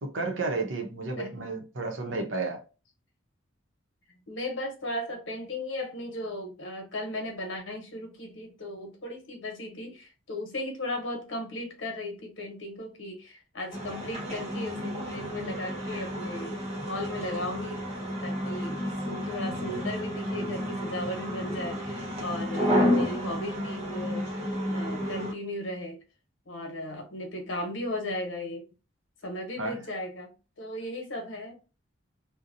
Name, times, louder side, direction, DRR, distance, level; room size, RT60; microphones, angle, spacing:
voice 1, 0.0-2.6 29.6-29.8, right 3 dB, 75° right, 0.8 m, -32 dB
voice 2, 4.3-17.8 18.2-26.0 26.5-28.7 29.2-31.5, left 1 dB, 70° left, 0.9 m, -36 dB
sound 1, 13.7-25.3, equal, 30° right, 0.9 m, -31 dB
2.8 x 2.1 x 2.5 m
head